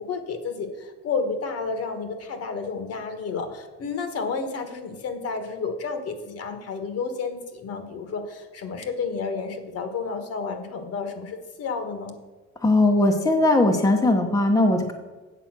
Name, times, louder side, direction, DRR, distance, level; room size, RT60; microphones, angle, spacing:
voice 1, 0.0-12.1, left 4 dB, 55° left, 7 dB, 1.4 m, -31 dB
voice 2, 12.6-14.9, left 2 dB, 10° left, 3 dB, 0.9 m, -19 dB
8.5 x 6.9 x 6.0 m, 1.3 s
cardioid pair, 130°, 29 cm